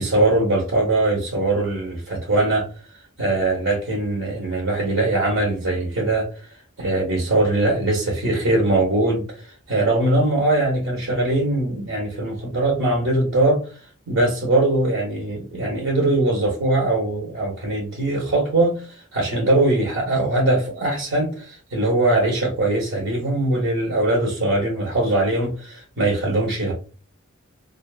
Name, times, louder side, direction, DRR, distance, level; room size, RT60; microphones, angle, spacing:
voice 1, 0.0-2.7 3.2-6.3 6.8-13.6 14.1-26.7, right 2 dB, 80° right, 0.8 m, -21 dB
2.5 x 2.3 x 2.3 m
head